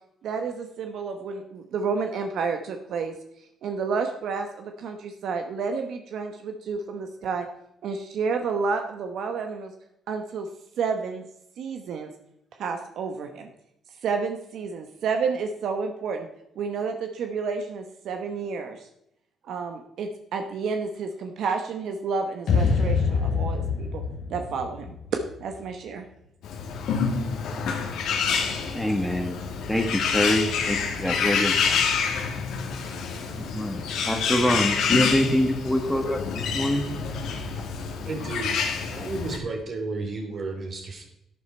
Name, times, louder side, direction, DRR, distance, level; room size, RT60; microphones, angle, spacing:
voice 1, 0.2-3.1 3.6-7.5 7.8-9.7 10.1-10.5 10.8-11.2 11.6-12.1 12.6-13.5 14.0-16.3 16.6-18.9 19.4-24.0 24.3-26.0, right 5 dB, 75° right, 5 dB, 1.0 m, -30 dB
sound 1, 22.5-25.7, left 5 dB, 65° left, 3.3 m, -25 dB
Bird, 26.4-39.4, left 6 dB, 85° left, 1.9 m, -27 dB
voice 2, 28.7-29.4 29.7-31.9 33.4-36.2 36.5-36.9, left 1 dB, 5° left, 5 dB, 1.5 m, -25 dB
voice 3, 38.0-38.6 38.9-41.1, right 3 dB, 50° right, 3 dB, 3.0 m, -32 dB
11.0 x 9.6 x 4.5 m, 0.77 s
cardioid pair, 90°, 0 cm